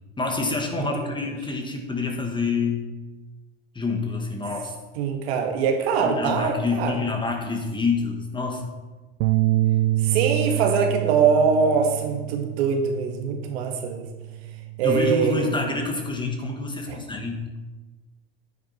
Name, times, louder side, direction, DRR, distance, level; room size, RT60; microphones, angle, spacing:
voice 1, 0.2-2.8 3.7-4.7 6.0-8.6 14.8-17.5, left 4 dB, 15° left, 2 dB, 1.8 m, -27 dB
voice 2, 5.0-7.0 10.0-14.1 14.8-15.5 16.9-17.0, right 6 dB, 80° right, 4 dB, 1.6 m, -23 dB
sound 1, 9.2-15.5, right 16 dB, 55° right, 0.5 m, -27 dB
9.5 x 9.2 x 4.3 m, 1.2 s
supercardioid pair, 110°, 31 cm